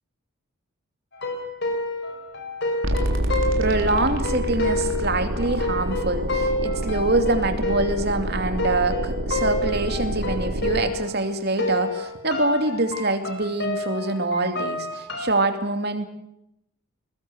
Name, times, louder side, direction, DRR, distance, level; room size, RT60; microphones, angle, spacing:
sound 1, 1.1-11.3 11.6-15.4, left 1 dB, 50° left, 5.0 m, -29 dB
sound 2, 2.8-10.9, right 1 dB, 60° right, 3.7 m, -27 dB
voice 1, 3.6-16.1, right 2 dB, 45° right, 7 dB, 2.7 m, -25 dB
22.0 x 20.5 x 8.0 m, 0.80 s
head